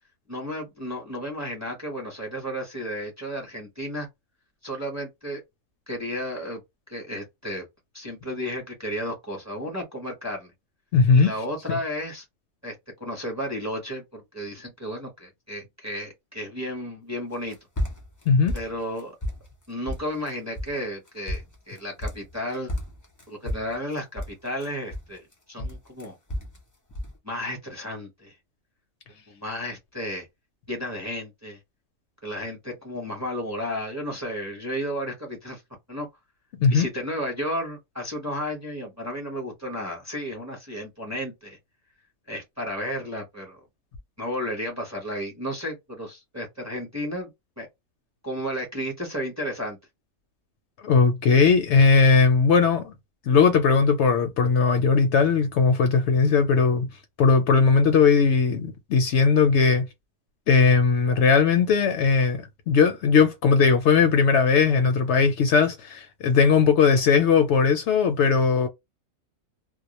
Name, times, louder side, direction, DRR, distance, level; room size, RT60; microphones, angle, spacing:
voice 1, 0.3-4.1 4.6-5.4 5.9-6.6 6.9-7.6 7.9-10.5 11.1-12.2 12.6-17.6 18.5-19.1 19.7-22.7 23.3-26.1 27.2-28.3 29.3-30.3 30.7-31.6 32.2-35.6 35.9-36.1 36.7-41.6 42.3-43.6 44.2-47.7 48.2-49.8, equal, 15° right, 0.7 m, -33 dB
voice 2, 10.9-11.3 18.3-18.5 25.6-25.7 36.6-36.9 50.8-52.9 53.3-56.9 57.2-59.9 60.5-68.7, left 5 dB, 65° left, 0.8 m, -19 dB
sound 1, 17.3-18.2 18.5-19.5 19.9-20.3 20.6-20.8 21.1-22.3 22.7-25.3 25.6-26.6 26.9-27.2, equal, 25° left, 0.4 m, -32 dB
2.2 x 2.0 x 2.8 m
omnidirectional pair, 1.4 m